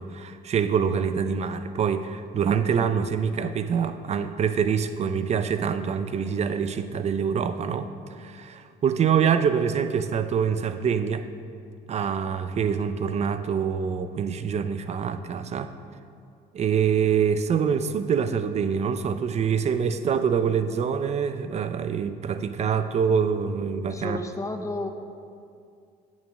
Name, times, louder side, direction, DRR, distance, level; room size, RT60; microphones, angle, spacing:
voice 1, 0.0-7.9 8.2-11.3 11.9-15.7 16.5-24.2, right 7 dB, 40° right, 10 dB, 0.6 m, -25 dB
voice 2, 23.9-24.9, left 2 dB, 20° left, 6 dB, 0.8 m, -32 dB
8.5 x 7.4 x 6.1 m, 2.4 s
cardioid pair, 110°, 17 cm